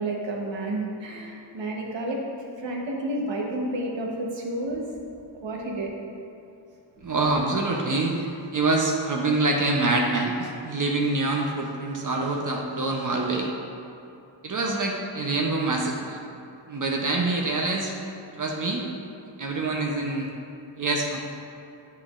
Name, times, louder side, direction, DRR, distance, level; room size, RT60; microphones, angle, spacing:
voice 1, 0.0-2.2 2.6-4.8 5.4-5.9 7.0-7.1, right 1 dB, 65° right, -1 dB, 1.1 m, -30 dB
voice 2, 7.0-13.5 14.4-16.2 16.7-17.9 18.3-18.9 19.4-20.3 20.8-21.2, right 2 dB, 40° right, 0 dB, 0.7 m, -25 dB
8.0 x 5.7 x 2.5 m, 2.7 s
cardioid pair, 85°, 48 cm